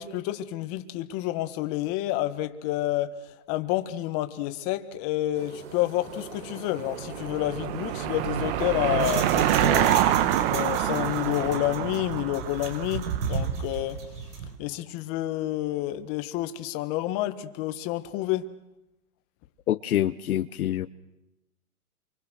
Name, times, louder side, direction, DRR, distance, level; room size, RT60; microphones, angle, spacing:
voice 1, 0.0-3.2 3.5-10.1 10.5-14.0 14.6-18.5, left 14 dB, 30° left, 1.6 m, -29 dB
sound 1, 5.3-11.5, right 6 dB, 60° right, 4.8 m, -42 dB
Car passing by / Engine, 6.5-13.3, right 12 dB, 40° right, 1.2 m, -26 dB
sound 2, 8.4-14.6, right 5 dB, 85° right, 5.6 m, -35 dB
voice 2, 19.7-20.9, left 12 dB, 70° left, 1.0 m, -26 dB
28.5 x 24.5 x 6.4 m
hypercardioid pair, 145°, 45 cm